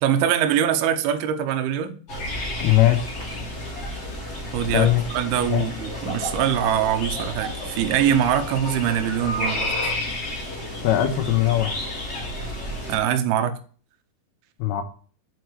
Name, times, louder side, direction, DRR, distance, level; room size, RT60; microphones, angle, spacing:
voice 1, 0.0-2.0 4.5-9.9 12.9-13.6, right 9 dB, 80° right, 2.5 m, -23 dB
sound 1, 2.1-13.0, left 1 dB, 45° left, 1.2 m, -31 dB
voice 2, 2.6-3.1 4.7-5.0 5.5-5.6 10.8-11.8 14.6-14.8, left 13 dB, 80° left, 2.8 m, -20 dB
6.6 x 4.7 x 4.7 m
omnidirectional pair, 4.7 m